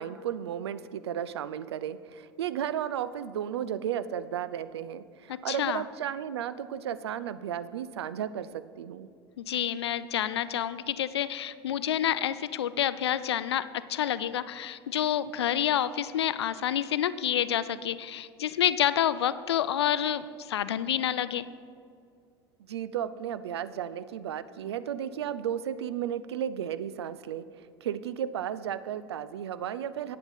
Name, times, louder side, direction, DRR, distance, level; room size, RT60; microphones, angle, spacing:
voice 1, 0.0-9.1 22.6-27.4 27.8-30.2, right 9 dB, 80° right, 15 dB, 0.4 m, -34 dB
voice 2, 5.3-5.8 9.4-21.5, left 10 dB, 85° left, 15 dB, 0.4 m, -28 dB
10.0 x 7.8 x 5.3 m, 2.3 s
hypercardioid pair, 75°, 13 cm